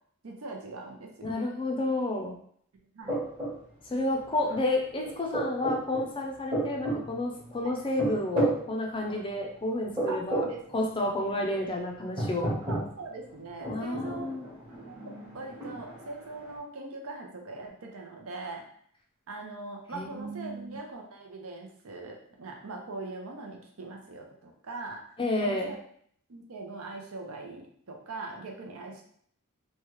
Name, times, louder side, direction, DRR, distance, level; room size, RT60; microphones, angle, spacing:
voice 1, 0.2-1.3 2.9-3.2 7.6-7.7 10.1-10.8 11.4-11.6 12.7-14.4 14.9-15.0 15.3-18.6 19.3-25.0 25.4-25.8 26.3-29.0, right 3 dB, 70° right, 1 dB, 0.6 m, -41 dB
voice 2, 1.2-2.4 3.9-10.4 10.7-12.5 13.7-14.5 19.9-20.8 25.2-25.7, left 1 dB, 25° left, 1 dB, 0.4 m, -30 dB
sound 1, 3.1-3.6 4.5-4.6 4.9-6.1 6.5-7.5 8.0-8.6 9.0-9.1 10.0-10.5 11.0-11.1 12.2-12.9 13.4-16.6, right 2 dB, 25° right, 1.1 m, -32 dB
3.1 x 2.3 x 3.0 m, 0.62 s
head